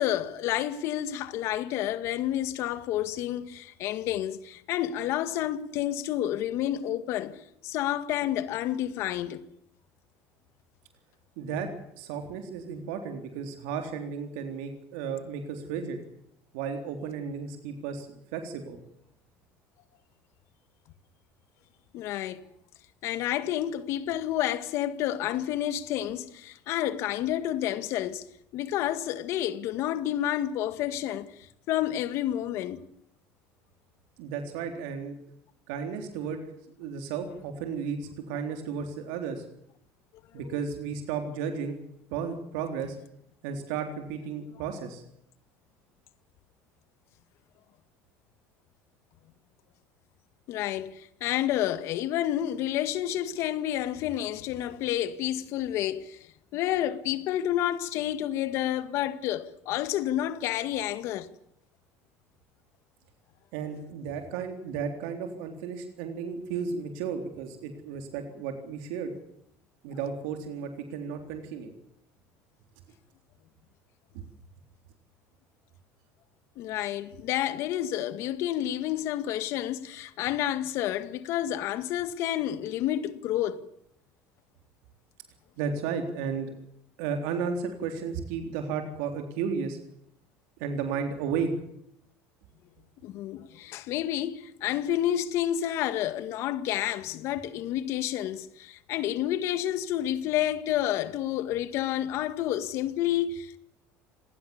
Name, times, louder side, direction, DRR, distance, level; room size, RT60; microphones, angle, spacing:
voice 1, 0.0-7.4 7.6-9.4 21.9-22.5 23.0-28.3 28.5-31.3 31.7-32.8 40.4-40.5 50.5-56.2 56.5-61.3 76.6-83.6 93.0-103.6, left 12 dB, 50° left, 1.9 m, -29 dB
voice 2, 11.4-11.7 12.0-16.0 16.5-18.1 18.3-18.8 34.2-35.1 35.7-36.4 36.8-39.4 40.3-41.8 42.1-43.0 43.4-45.0 63.5-69.1 69.8-71.7 74.1-74.2 85.6-86.5 87.0-89.8 90.6-91.5, right 6 dB, 80° right, 3.7 m, -33 dB
27.5 x 19.0 x 7.2 m
cardioid pair, 165°, 6 cm